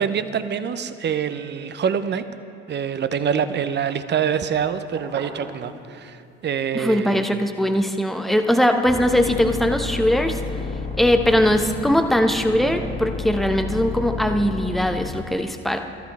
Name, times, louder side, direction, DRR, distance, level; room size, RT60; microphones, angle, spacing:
voice 1, 0.0-2.2 2.7-7.3, right 7 dB, 35° right, 11 dB, 0.8 m, -25 dB
sound 1, 4.5-6.4 6.8-11.5, right 4 dB, 70° right, 2.6 m, -44 dB
voice 2, 6.7-10.4 11.0-15.8, equal, ahead, 6 dB, 1.0 m, -20 dB
sound 2, 8.9-15.1, left 3 dB, 25° left, 2.1 m, -31 dB
18.0 x 13.0 x 3.6 m, 2.5 s
hypercardioid pair, 65°, 32 cm